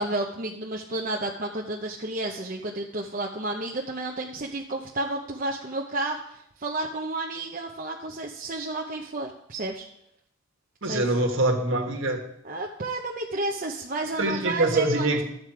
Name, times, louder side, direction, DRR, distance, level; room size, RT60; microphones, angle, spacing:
voice 1, 0.0-9.9 10.8-11.0 12.4-15.2, right 2 dB, 40° right, -1 dB, 0.8 m, -31 dB
voice 2, 10.8-12.2 14.2-15.2, right 2 dB, 60° right, 3 dB, 1.6 m, -24 dB
13.0 x 7.5 x 4.8 m, 0.77 s
head